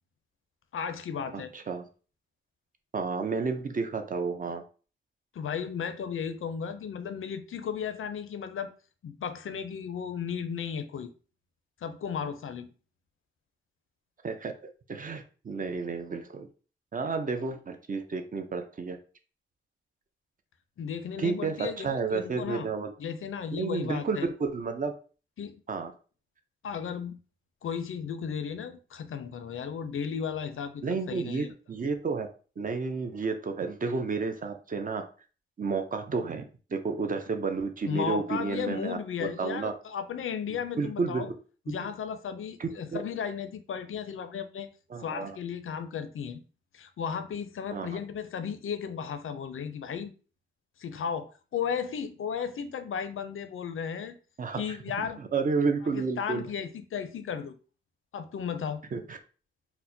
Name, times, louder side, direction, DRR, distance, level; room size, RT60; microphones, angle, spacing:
voice 1, 0.7-1.5 5.3-8.7 9.0-11.1 11.8-12.7 20.8-22.7 23.0-24.3 25.4-25.6 26.6-27.2 27.6-31.5 37.9-41.3 41.7-44.7 45.0-46.4 46.7-50.1 50.8-54.2 54.6-55.2 55.8-57.5 58.1-58.8, left 7 dB, 80° left, 0.4 m, -35 dB
voice 2, 1.3-1.8 2.9-4.6 14.2-14.5 14.9-16.5 16.9-19.0 21.2-22.9 23.5-24.9 25.7-25.9 30.8-32.3 32.6-35.0 35.6-36.5 36.7-39.0 39.4-39.7 40.8-41.3 41.8-41.9 42.6-43.0 44.9-45.4 47.7-48.0 54.4-54.8 55.2-56.5 58.9-59.2, right 4 dB, 40° right, 0.4 m, -31 dB
4.3 x 2.1 x 2.6 m
wide cardioid pair, 175°, 21 cm